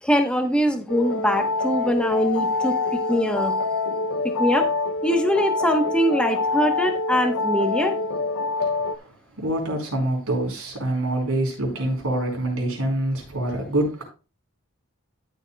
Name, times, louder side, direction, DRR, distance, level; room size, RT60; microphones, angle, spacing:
voice 1, 0.0-3.5 4.4-4.7 5.0-7.9, equal, 5° left, 1.1 m, -22 dB
sound 1, 0.9-9.0, left 3 dB, 75° left, 0.6 m, -25 dB
voice 2, 9.4-14.0, right 1 dB, 80° right, 4.6 m, -25 dB
13.0 x 7.2 x 2.3 m
head